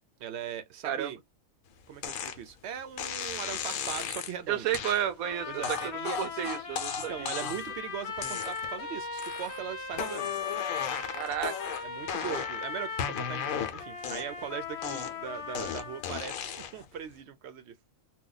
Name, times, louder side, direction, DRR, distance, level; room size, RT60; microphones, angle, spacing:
voice 1, 0.2-1.2 1.9-4.7 5.5-6.4 7.1-10.3 11.8-17.7, right 8 dB, 65° right, 0.8 m, -39 dB
sound 1, 2.0-2.4 3.0-4.3 4.7-5.0 5.6-7.7 8.2-8.8 9.2-9.6 9.9-12.6 13.0-14.4 14.8-16.8, left 8 dB, 85° left, 1.1 m, -35 dB
voice 2, 4.5-7.3 11.1-11.5, right 10 dB, 90° right, 1.1 m, -32 dB
sound 2, 5.2-16.2, left 5 dB, 55° left, 1.1 m, -38 dB
2.9 x 2.2 x 3.8 m
omnidirectional pair, 1.4 m